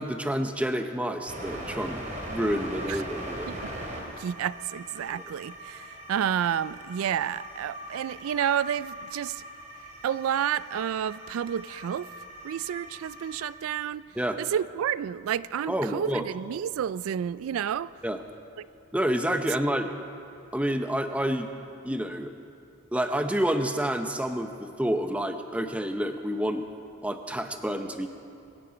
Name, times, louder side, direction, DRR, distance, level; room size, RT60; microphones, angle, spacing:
voice 1, 0.0-3.5 14.2-14.4 15.7-16.3 18.0-18.2 18.9-19.9 20.5-21.5 21.8-22.3 22.9-26.6 27.0-28.1, equal, 5° right, 7 dB, 0.6 m, -28 dB
sound 1, 1.3-13.5, right 1 dB, 35° right, 2.8 m, -40 dB
voice 2, 4.2-9.4 10.0-12.1 12.4-14.0 14.4-17.9 18.6-18.7, right 9 dB, 90° right, 17 dB, 0.3 m, -30 dB
23.5 x 9.9 x 5.1 m, 2.6 s
head